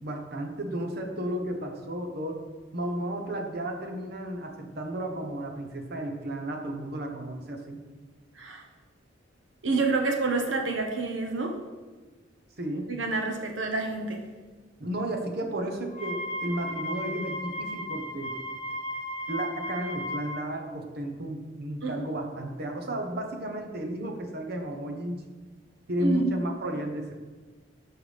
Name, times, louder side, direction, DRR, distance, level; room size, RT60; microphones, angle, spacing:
voice 1, 0.0-2.4 2.7-7.8 12.6-12.9 14.8-18.3 19.3-25.2 25.9-27.1, right 1 dB, 55° right, 3 dB, 1.1 m, -33 dB
voice 2, 9.6-11.5 12.9-14.2 21.8-21.9 26.0-26.4, right 3 dB, 75° right, 2 dB, 1.2 m, -28 dB
Wind instrument woodwind instrument, 15.9-20.4, equal, 30° left, 1.5 m, -35 dB
13.0 x 4.6 x 3.5 m, 1.3 s
head